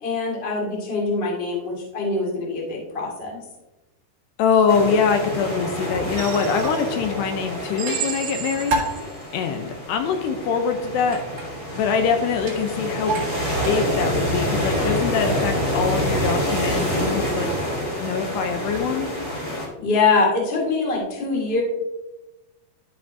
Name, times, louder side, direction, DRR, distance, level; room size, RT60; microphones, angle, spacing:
voice 1, 0.0-3.4 19.8-21.6, left 4 dB, 55° left, -3 dB, 0.6 m, -23 dB
voice 2, 4.4-8.8 9.3-11.2 11.8-13.3 13.6-17.5 18.0-19.1, left 6 dB, 80° left, 6 dB, 2.6 m, -23 dB
sound 1, 4.7-19.7, equal, 25° left, 3.1 m, -27 dB
sound 2, 6.2-7.0 7.8-9.2, right 10 dB, 80° right, 2.9 m, -33 dB
sound 3, 6.6-6.8 7.2-7.3 7.9-9.4 11.0-11.8 12.4-12.7 13.1-13.8 14.2-15.3, right 3 dB, 35° right, 1.6 m, -31 dB
13.0 x 5.7 x 2.6 m, 1.0 s
omnidirectional pair, 5.1 m